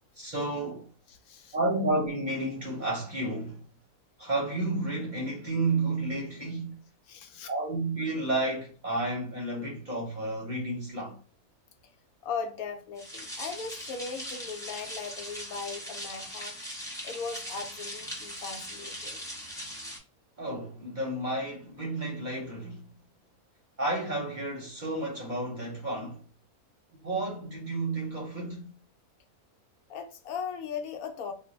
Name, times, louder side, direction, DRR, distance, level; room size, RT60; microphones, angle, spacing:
voice 1, 0.1-0.9 1.5-3.6 4.2-6.8 7.5-11.2 20.4-22.9 23.8-26.2 27.0-28.7, right 2 dB, 45° right, 0.6 m, -31 dB
voice 2, 1.2-1.6 7.1-7.5 12.2-16.5 17.0-19.2 29.9-31.3, left 5 dB, 75° left, 1.0 m, -38 dB
sound 1, 13.0-20.0, equal, 5° left, 0.3 m, -40 dB
2.5 x 2.0 x 3.9 m
omnidirectional pair, 1.5 m